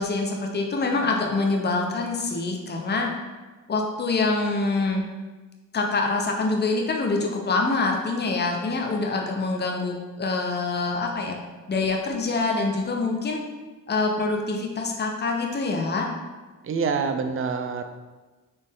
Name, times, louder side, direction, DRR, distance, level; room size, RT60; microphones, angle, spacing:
voice 1, 0.0-3.1 3.7-5.0 5.7-11.4 11.7-13.4 13.9-16.1, left 3 dB, 30° left, 1 dB, 0.7 m, -25 dB
voice 2, 16.7-17.8, right 5 dB, 40° right, 7 dB, 0.5 m, -26 dB
4.3 x 3.2 x 3.6 m, 1.3 s
cardioid pair, 75°, 33 cm